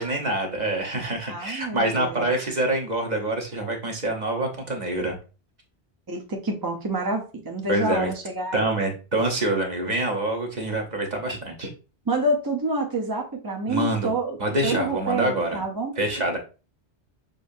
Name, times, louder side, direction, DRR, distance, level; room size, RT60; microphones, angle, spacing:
voice 1, 0.0-5.2 7.7-8.1 8.5-11.7 13.7-14.1 14.4-15.6 16.0-16.4, right 1 dB, 40° right, 2 dB, 1.1 m, -26 dB
voice 2, 1.3-2.3 6.1-8.7 12.1-14.4 14.6-16.0, right 2 dB, 25° right, 0 dB, 0.6 m, -28 dB
6.5 x 2.7 x 2.6 m, 0.32 s
omnidirectional pair, 1.2 m